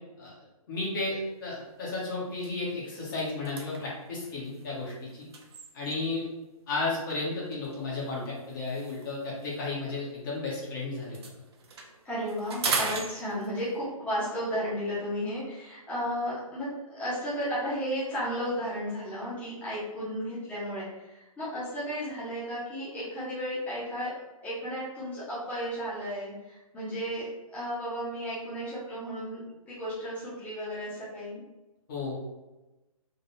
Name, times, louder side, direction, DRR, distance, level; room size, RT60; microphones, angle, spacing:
voice 1, 0.7-5.3 5.7-6.3 6.7-11.2 31.9-32.2, left 3 dB, 35° left, -6 dB, 1.5 m, -33 dB
sound 1, 1.1-1.4 1.8-1.9 2.3-6.2 7.1-10.7 10.9-13.8, right 4 dB, 45° right, 0.8 m, -38 dB
voice 2, 12.0-24.1 24.4-29.4 29.7-31.4, equal, 5° left, -11 dB, 1.4 m, -34 dB
3.9 x 2.8 x 4.3 m, 1.0 s
hypercardioid pair, 150°, 19 cm